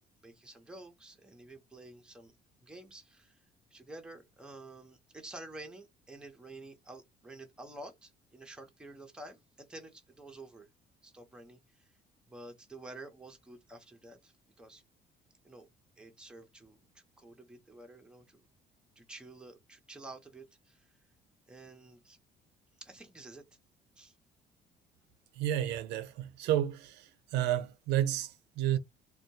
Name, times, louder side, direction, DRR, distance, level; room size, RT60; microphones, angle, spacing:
voice 1, 0.2-2.4 2.6-3.4 3.7-10.7 11.0-11.9 12.3-14.8 15.4-15.7 16.0-18.5 19.0-20.9 21.5-22.2 22.8-23.4 24.0-24.1, right 2 dB, 5° right, 0.7 m, -50 dB
voice 2, 25.3-28.8, right 12 dB, 85° right, 0.5 m, -31 dB
2.2 x 2.1 x 2.8 m
cardioid pair, 110°, 17 cm